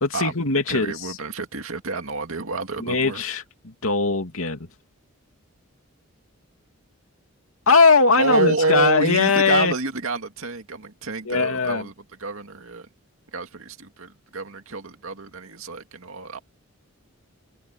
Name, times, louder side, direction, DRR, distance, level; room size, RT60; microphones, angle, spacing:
voice 1, 0.0-1.2 2.8-4.7 7.7-9.7 11.3-11.9, left 4 dB, 75° left, 2.7 m, -20 dB
voice 2, 0.7-3.2 8.1-11.9 12.2-12.9 13.3-16.4, right 3 dB, 75° right, 2.3 m, -28 dB
head